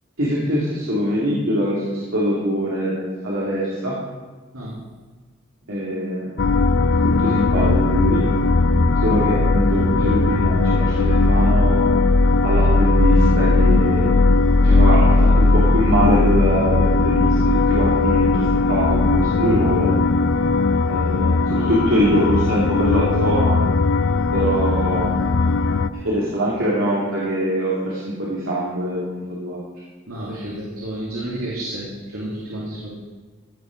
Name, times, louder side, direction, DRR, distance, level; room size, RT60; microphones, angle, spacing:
voice 1, 0.2-3.9 5.7-6.4 7.0-8.2 9.0-11.9 12.4-14.1 14.6-19.9 20.9-23.6 24.3-25.1 26.0-29.6, equal, 70° right, -7 dB, 3.1 m, -23 dB
sound 1, 6.4-25.9, left 3 dB, 60° left, 0.5 m, -18 dB
voice 2, 30.1-32.9, right 1 dB, 85° right, -7 dB, 3.3 m, -31 dB
17.0 x 6.9 x 6.3 m, 1.4 s
head